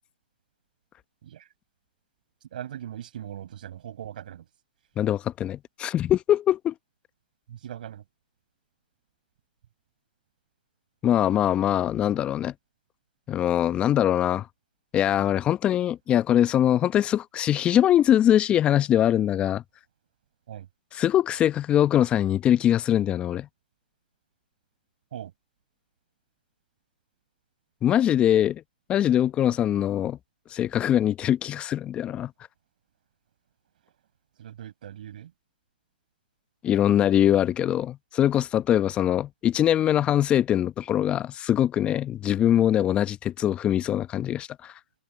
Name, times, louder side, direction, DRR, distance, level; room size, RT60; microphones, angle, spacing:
voice 1, 2.4-4.4 7.5-8.0 20.5-20.7 25.1-25.3 33.8-33.9 34.4-35.3, right 10 dB, 60° right, 6.0 m, -40 dB
voice 2, 5.0-6.7 11.0-12.5 13.3-14.5 14.9-19.6 20.9-23.5 27.8-28.6 28.9-30.2 30.5-32.3 36.6-44.7, left 11 dB, 20° left, 0.9 m, -22 dB
hypercardioid pair, 130°, 5 cm